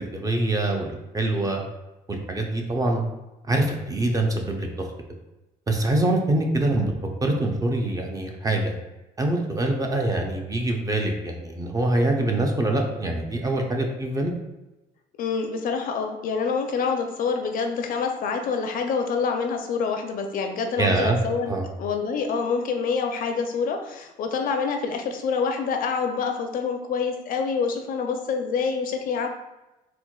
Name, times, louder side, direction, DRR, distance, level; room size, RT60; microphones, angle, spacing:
voice 1, 0.0-1.6 2.1-3.0 3.5-4.9 5.7-6.9 7.2-8.7 9.2-14.3 20.8-21.2 21.5-21.7, right 2 dB, 20° right, 2 dB, 0.4 m, -24 dB
voice 2, 15.2-29.3, left 5 dB, 55° left, 4 dB, 0.4 m, -26 dB
4.3 x 2.2 x 2.2 m, 1.0 s
cardioid pair, 110°, 17 cm